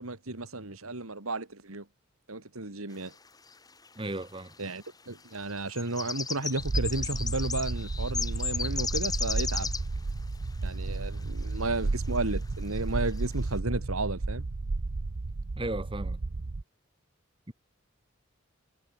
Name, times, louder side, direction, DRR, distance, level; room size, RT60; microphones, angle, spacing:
voice 1, 0.0-1.8 2.3-3.1 4.6-9.7 10.6-14.4, right 2 dB, 90° right, 2.7 m, -33 dB
sound 1, 3.5-3.6 3.8-4.5 5.3-10.0 10.9-11.0 11.5-11.6 12.0-12.3 12.7-12.8 13.1-13.3, left 5 dB, 20° left, 2.4 m, -34 dB
voice 2, 4.0-4.5 15.6-16.2 17.5-17.6, right 1 dB, 25° right, 1.7 m, -35 dB
sound 2, 6.6-16.6, right 3 dB, 60° right, 0.7 m, -32 dB
head